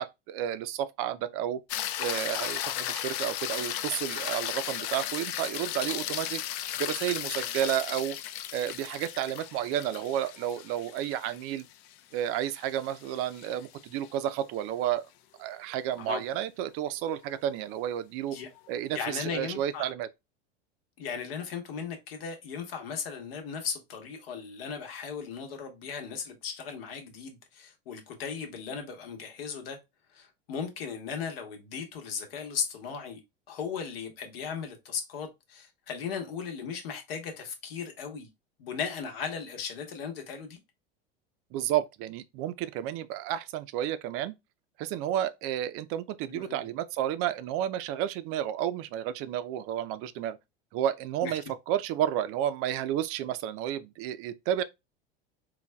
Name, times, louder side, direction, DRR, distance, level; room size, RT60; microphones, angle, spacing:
voice 1, 0.0-1.6 2.0-6.4 6.8-8.2 8.5-11.7 12.1-15.0 15.4-18.4 18.7-20.1 41.5-44.3 44.8-50.4 50.7-54.6, right 11 dB, 50° right, 0.4 m, -31 dB
sound 1, 1.7-14.1 18.6-18.7, left 12 dB, 50° left, 0.5 m, -35 dB
voice 2, 18.9-19.9 21.0-29.8 30.1-33.2 33.5-38.3 38.6-40.6 46.3-46.7 51.2-51.3, left 6 dB, 75° left, 1.1 m, -37 dB
4.0 x 2.2 x 2.2 m
hypercardioid pair, 105°, 30 cm